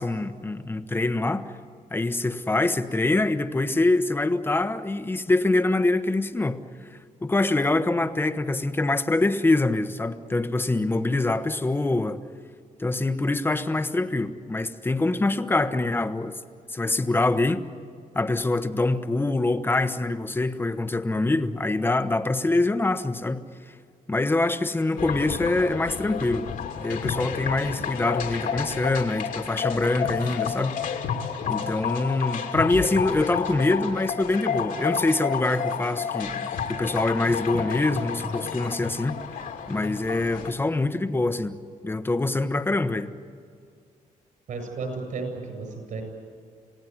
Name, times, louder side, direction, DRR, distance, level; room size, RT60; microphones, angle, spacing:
voice 1, 0.0-1.5 1.9-6.6 7.2-12.2 12.8-16.4 16.7-17.6 18.1-23.4 24.1-26.5 26.8-30.8 31.5-39.2 39.7-41.6 41.8-43.1, left 2 dB, 15° left, 10 dB, 1.1 m, -24 dB
sound 1, 25.0-40.5, left 7 dB, 75° left, 2.8 m, -31 dB
voice 2, 44.5-46.0, right 4 dB, 65° right, 5 dB, 7.7 m, -33 dB
27.5 x 17.5 x 9.5 m, 2.2 s
cardioid pair, 120°, 14 cm